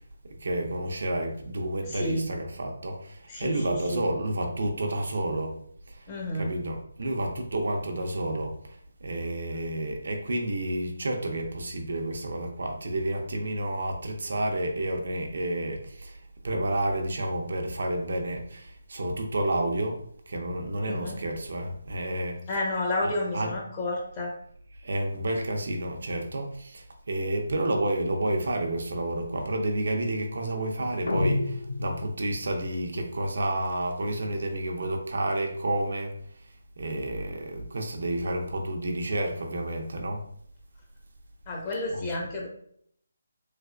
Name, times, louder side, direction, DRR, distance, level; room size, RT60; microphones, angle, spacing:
voice 1, 0.3-5.6 5.9-6.1 6.4-22.4 23.0-23.5 24.8-36.2 36.8-40.3 41.9-42.0, right 1 dB, 65° right, 3 dB, 0.6 m, -30 dB
voice 2, 1.8-2.3 3.3-4.0 6.1-6.5 20.9-21.2 22.5-24.3 41.5-42.5, left 1 dB, 25° left, -3 dB, 0.8 m, -31 dB
sound 1, 31.1-32.5, left 2 dB, 75° left, 0.4 m, -29 dB
3.2 x 2.9 x 2.5 m, 0.65 s
figure-of-eight pair, 155°, 0 cm